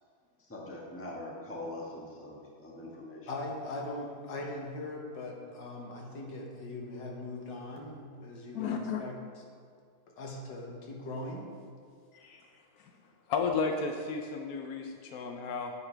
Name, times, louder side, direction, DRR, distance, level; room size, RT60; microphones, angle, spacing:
voice 1, 0.4-3.3, left 1 dB, 10° left, -4 dB, 1.1 m, -43 dB
voice 2, 3.3-9.2 10.2-11.5, left 2 dB, 60° left, 0 dB, 1.8 m, -40 dB
voice 3, 8.5-9.0 12.1-12.4 12.8-12.9 13.3-15.7, left 5 dB, 80° left, 3 dB, 0.8 m, -33 dB
9.5 x 8.3 x 3.3 m, 2.2 s
omnidirectional pair, 2.3 m